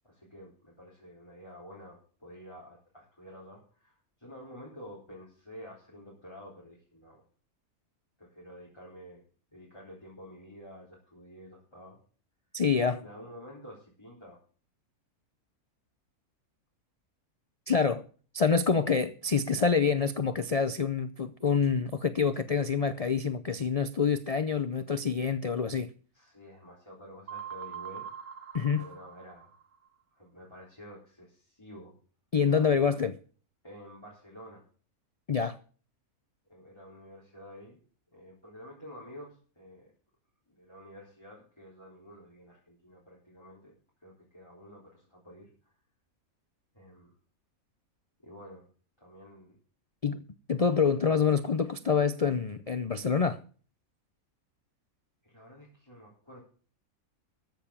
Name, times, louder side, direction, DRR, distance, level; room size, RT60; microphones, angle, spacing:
voice 1, 0.0-7.2 8.2-9.2 9.5-12.0 13.0-14.4 26.1-28.1 28.8-29.5 30.1-31.9 32.4-33.0 33.6-34.6 36.5-37.8 38.1-39.9 40.5-43.7 44.0-45.7 46.7-47.1 48.2-48.7 49.0-49.6 55.2-56.4, equal, 15° left, 3.8 m, -50 dB
voice 2, 12.5-13.0 17.7-18.0 18.3-25.9 28.5-28.9 32.3-33.1 35.3-35.6 50.0-50.2 50.5-53.4, left 6 dB, 65° left, 0.3 m, -26 dB
sound 1, 27.3-29.9, right 8 dB, 80° right, 1.5 m, -43 dB
14.0 x 6.9 x 7.2 m
omnidirectional pair, 1.5 m